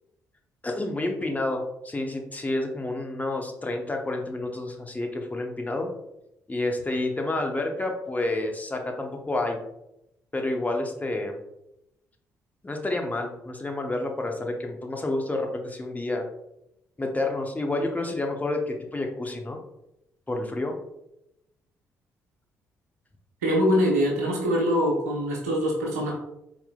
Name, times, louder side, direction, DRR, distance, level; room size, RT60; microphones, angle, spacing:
voice 1, 0.6-5.9 6.5-9.6 10.3-11.4 12.6-16.2 17.0-19.6 20.3-20.7, left 2 dB, 20° left, 2 dB, 0.9 m, -29 dB
voice 2, 23.4-26.1, equal, 80° right, -2 dB, 1.0 m, -23 dB
4.2 x 4.1 x 2.3 m, 0.84 s
figure-of-eight pair, 45°, 8 cm